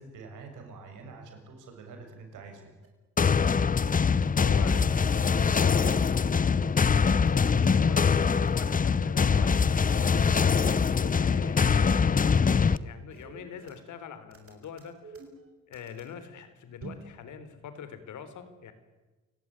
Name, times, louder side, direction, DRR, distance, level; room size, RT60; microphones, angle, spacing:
voice 1, 0.0-2.7, right 4 dB, 85° right, 4 dB, 6.9 m, -46 dB
sound 1, 2.8-2.9 3.2-3.3 3.7-3.8 4.2-4.3 4.6-4.8 5.1-5.2 5.6-6.4 6.8-8.6 9.3-9.6 9.9-10.0 10.2-10.4 10.7-10.9 11.2-11.3 11.7-11.8 12.2-12.3 12.6-12.8 13.1-13.9 14.3-16.1 16.8-17.1, right 4 dB, 45° right, 6.7 m, -47 dB
sound 2, 3.2-12.8, left 6 dB, 30° left, 0.8 m, -23 dB
voice 2, 4.4-6.4 6.9-10.3 10.9-15.2 15.7-18.7, left 7 dB, 75° left, 11 dB, 3.8 m, -43 dB
28.5 x 18.0 x 9.9 m, 1.2 s
cardioid pair, 90°, 30 cm